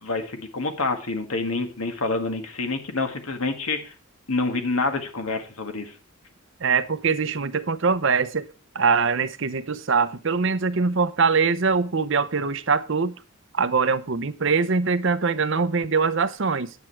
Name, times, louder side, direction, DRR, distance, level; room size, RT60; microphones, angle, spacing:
voice 1, 0.0-3.9 4.3-5.9, left 3 dB, 80° left, 1.8 m, -27 dB
voice 2, 6.6-8.5 8.7-13.1 13.5-16.7, right 5 dB, 60° right, 0.7 m, -23 dB
9.6 x 7.5 x 4.6 m
head